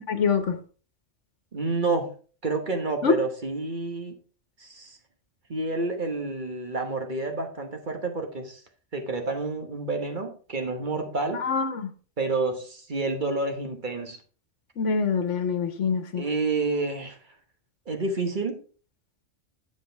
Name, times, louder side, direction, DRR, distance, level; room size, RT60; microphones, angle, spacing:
voice 1, 0.1-0.6 3.0-3.2 11.3-11.9 14.8-16.2, left 5 dB, 85° left, 8 dB, 1.4 m, -25 dB
voice 2, 1.5-2.1 2.4-4.2 4.6-5.0 5.5-8.6 8.9-11.5 12.2-14.2 16.2-17.2 17.9-18.6, right 3 dB, 45° right, 4 dB, 1.3 m, -29 dB
7.9 x 7.6 x 3.4 m, 0.39 s
omnidirectional pair, 1.2 m